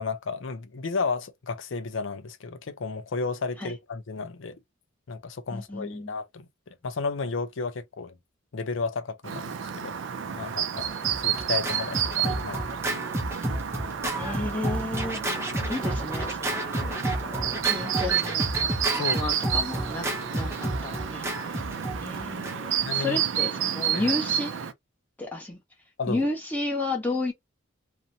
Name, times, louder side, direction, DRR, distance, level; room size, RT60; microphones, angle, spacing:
voice 1, 0.0-4.6 5.1-6.5 6.8-8.1 8.5-10.0 10.4-10.9 11.2-12.9 18.9-19.2 21.6-21.7 22.8-23.2 23.9-24.1 26.0-26.3, left 4 dB, 70° left, 0.5 m, -33 dB
voice 2, 5.5-6.1 14.1-17.0 17.3-18.4 18.9-21.5 22.0-24.5 25.2-25.6 26.1-27.3, left 2 dB, 10° left, 0.9 m, -32 dB
Chirp tweet, 9.2-24.7, right 9 dB, 70° right, 0.4 m, -30 dB
Scratching (performance technique), 10.7-22.8, right 1 dB, 15° right, 0.5 m, -31 dB
2.6 x 2.1 x 2.7 m
head